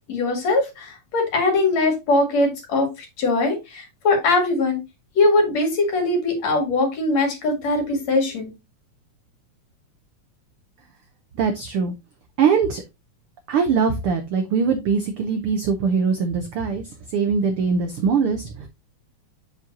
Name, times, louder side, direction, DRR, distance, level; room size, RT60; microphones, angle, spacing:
voice 1, 0.1-4.8 5.2-8.5, left 2 dB, 60° left, 2 dB, 3.2 m, -21 dB
voice 2, 11.4-11.9 12.4-12.8 13.5-18.7, right 5 dB, 80° right, 6 dB, 1.2 m, -22 dB
7.3 x 6.2 x 2.7 m, 0.22 s
omnidirectional pair, 3.5 m